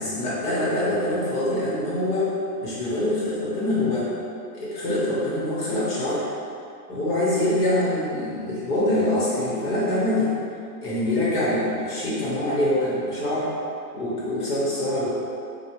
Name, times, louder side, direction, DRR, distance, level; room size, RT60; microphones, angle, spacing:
voice 1, 0.0-2.3 2.6-4.1 4.5-6.3 6.9-10.3 10.8-13.5 13.9-15.1, left 1 dB, 70° left, -9 dB, 1.2 m, -24 dB
3.3 x 2.4 x 2.9 m, 2.5 s
hypercardioid pair, 165°, 46 cm